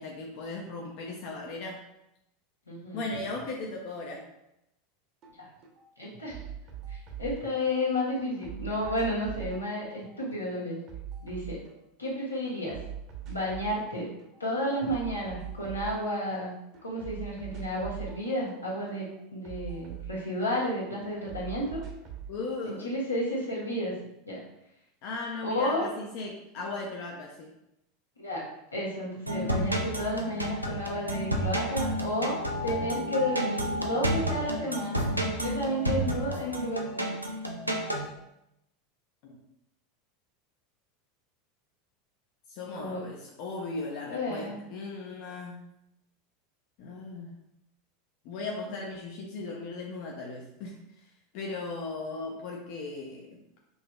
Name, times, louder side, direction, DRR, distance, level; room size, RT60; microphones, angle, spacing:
voice 1, 0.0-1.8 2.9-4.2 22.3-22.9 25.0-27.5 39.2-39.3 42.5-45.6 46.8-47.3 48.2-50.8 51.3-53.4, left 3 dB, 50° left, -1 dB, 0.5 m, -37 dB
voice 2, 2.7-3.0 5.4-5.5 6.0-6.4 6.9-10.8 11.2-11.6 12.0-12.8 13.3-14.1 14.4-16.5 16.8-21.8 22.6-23.9 24.3-24.4 25.4-25.9 28.2-28.4 28.7-32.4 32.6-37.1 42.8-43.0 44.1-44.6, left 1 dB, 85° left, -5 dB, 1.2 m, -32 dB
sound 1, 5.2-5.3 5.6-7.8 8.2-12.1 12.4-13.9 14.2-16.4 16.7-20.7 21.0-22.3, right 9 dB, 40° right, 0.8 m, -42 dB
sound 2, 29.3-38.1, equal, 90° right, 0.4 m, -31 dB
5.4 x 2.9 x 2.3 m, 0.84 s
figure-of-eight pair, 80°, 0 cm